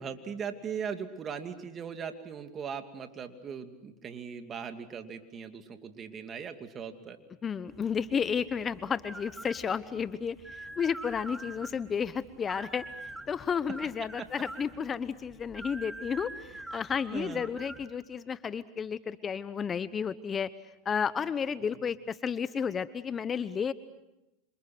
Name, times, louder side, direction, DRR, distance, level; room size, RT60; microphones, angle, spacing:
voice 1, 0.0-7.2 14.2-14.3 17.1-17.5 21.6-21.8, right 7 dB, 30° right, 7 dB, 2.7 m, -39 dB
voice 2, 7.4-12.9 13.3-20.5 20.8-23.7, left 7 dB, 25° left, 15 dB, 1.0 m, -32 dB
sound 1, 7.7-17.9, right 2 dB, 5° right, 2.7 m, -46 dB
28.0 x 26.5 x 6.2 m, 0.93 s
hypercardioid pair, 105°, 0 cm